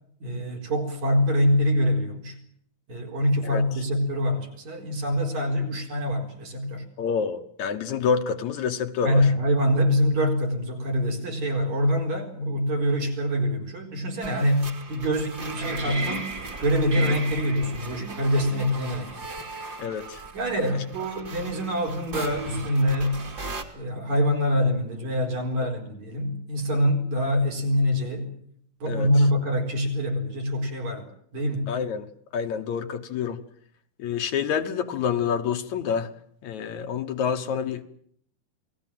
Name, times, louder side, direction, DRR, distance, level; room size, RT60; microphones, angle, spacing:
voice 1, 0.2-2.4 2.9-6.9 9.0-16.3 16.6-19.2 20.3-23.3 23.7-28.4 28.8-31.1 31.3-31.7, equal, 60° right, 2 dB, 5.6 m, -25 dB
voice 2, 7.0-9.3 19.8-20.2 28.9-29.1 31.7-33.4 34.0-36.1 36.4-37.8, left 6 dB, 65° left, 8 dB, 2.4 m, -28 dB
sound 1, 14.2-23.6, right 3 dB, 30° right, 2.9 m, -36 dB
28.0 x 19.5 x 7.6 m, 0.66 s
omnidirectional pair, 3.7 m